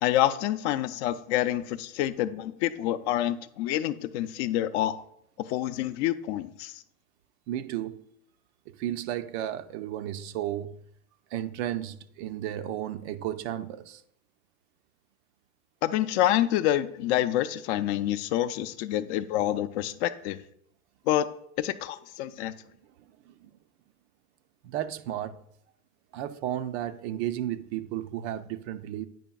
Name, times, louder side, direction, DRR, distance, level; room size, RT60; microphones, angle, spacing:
voice 1, 0.0-5.0 5.5-6.7 15.8-20.4 21.1-21.3 21.6-22.5, left 13 dB, 50° left, 0.5 m, -27 dB
voice 2, 7.5-8.0 8.7-10.8 11.3-14.0 23.3-23.5 24.6-25.4 26.1-29.1, right 12 dB, 50° right, 0.5 m, -33 dB
9.1 x 5.0 x 2.3 m
hypercardioid pair, 100°, 43 cm